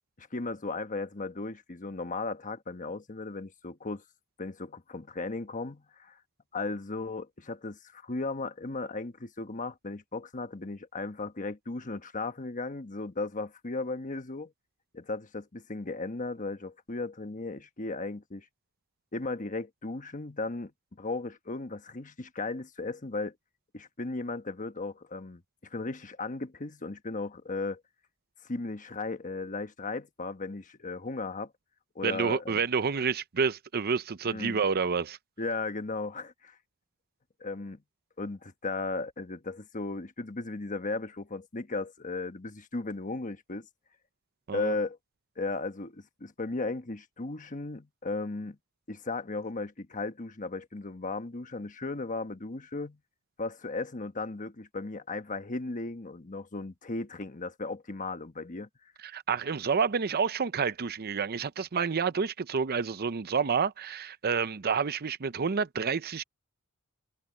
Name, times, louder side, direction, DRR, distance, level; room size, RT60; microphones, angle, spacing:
voice 1, 0.2-4.0 4.4-6.2 6.5-14.5 14.9-18.4 19.1-20.7 21.0-23.3 23.7-25.4 25.7-27.8 28.4-31.5 31.9-32.6 34.3-34.6 35.4-36.6 37.4-37.8 38.2-43.7 44.5-45.0 45.4-48.6 48.9-53.0 53.4-58.7, left 3 dB, 35° left, 1.2 m, -36 dB
voice 2, 32.0-35.2 44.5-44.7 59.0-66.2, right 5 dB, 45° right, 0.6 m, -29 dB
head